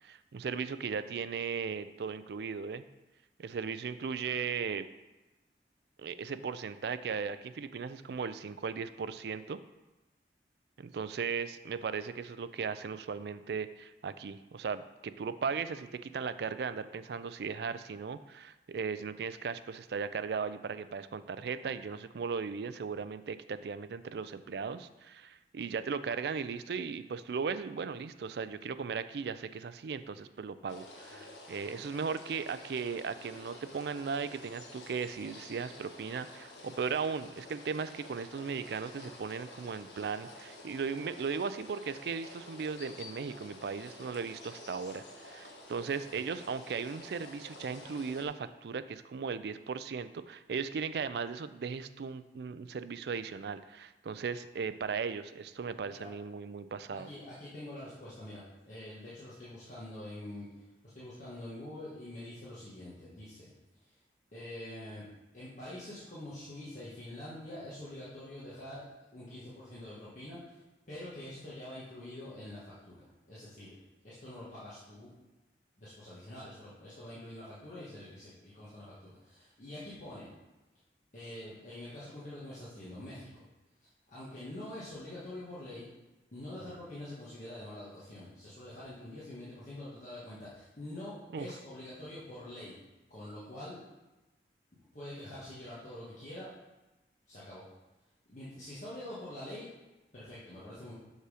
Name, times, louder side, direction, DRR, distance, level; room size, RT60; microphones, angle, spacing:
voice 1, 0.0-2.8 3.4-4.9 6.0-9.6 10.8-57.1 91.3-91.5, right 5 dB, 65° right, 12 dB, 0.4 m, -37 dB
sound 1, 30.7-48.3, left 2 dB, 80° left, 1.2 m, -50 dB
voice 2, 56.9-60.6 60.9-63.5 63.8-64.0 64.3-65.1 65.3-68.8 69.1-70.6 70.9-73.8 74.0-75.1 75.8-80.3 81.1-83.4 84.1-85.8 86.3-92.7 93.1-93.8 94.9-96.5 97.3-97.6 98.3-99.7 100.1-100.9, left 1 dB, 45° left, -10 dB, 1.5 m, -45 dB
6.1 x 5.5 x 4.9 m, 1.1 s
head